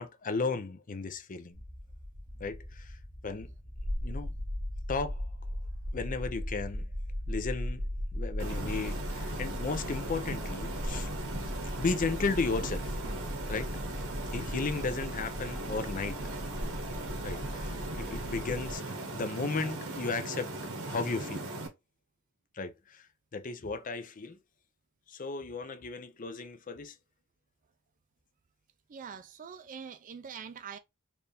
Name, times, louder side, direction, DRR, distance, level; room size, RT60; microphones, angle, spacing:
voice 1, 0.0-1.6 2.4-2.9 3.2-3.5 4.0-4.3 4.9-5.3 5.9-6.9 7.3-7.8 8.1-11.1 11.7-13.0 13.5-13.7 14.3-16.2 17.2-20.5 20.9-21.5 22.5-23.0 23.3-24.4 25.1-26.9, left 4 dB, 40° left, 0.5 m, -35 dB
sound 1, 1.5-18.7, equal, 20° right, 1.2 m, -38 dB
sound 2, 8.4-21.7, right 2 dB, 90° right, 1.1 m, -39 dB
voice 2, 28.9-30.8, right 6 dB, 40° right, 0.4 m, -44 dB
4.3 x 2.5 x 3.4 m
head